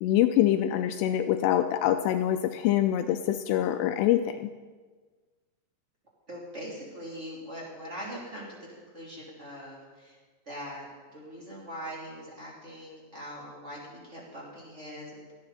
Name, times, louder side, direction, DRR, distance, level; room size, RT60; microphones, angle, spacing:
voice 1, 0.0-4.5, left 12 dB, 80° left, 8 dB, 2.5 m, -25 dB
voice 2, 6.3-10.2 10.5-15.4, equal, 20° right, -4 dB, 2.7 m, -42 dB
17.0 x 13.5 x 4.2 m, 1.4 s
omnidirectional pair, 5.2 m